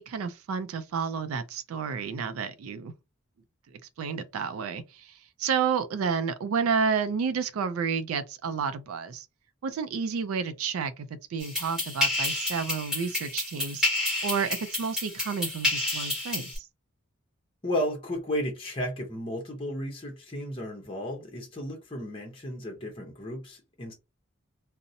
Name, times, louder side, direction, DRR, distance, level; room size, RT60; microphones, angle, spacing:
voice 1, 0.0-2.9 4.0-9.3 9.6-13.8 14.2-16.7, right 6 dB, 80° right, 0.3 m, -30 dB
sound 1, 11.4-16.6, left 2 dB, 5° right, 1.1 m, -30 dB
voice 2, 17.6-23.9, equal, 25° left, 0.7 m, -33 dB
2.6 x 2.0 x 2.6 m
head